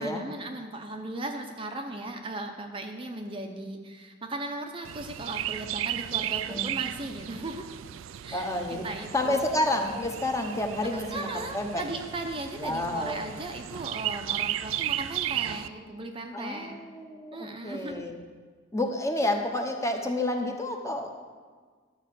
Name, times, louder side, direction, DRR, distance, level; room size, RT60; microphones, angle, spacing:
voice 1, 0.0-7.7 8.2-9.4 10.8-16.7 17.3-18.0, right 2 dB, 25° right, 4 dB, 0.7 m, -37 dB
Chirp tweet, 4.8-15.7, right 12 dB, 85° right, 0.4 m, -35 dB
voice 2, 8.3-8.9 9.1-11.8 12.6-13.2 16.3-18.1 18.7-21.1, left 1 dB, 15° left, 3 dB, 1.0 m, -29 dB
12.0 x 5.6 x 7.6 m, 1.5 s
head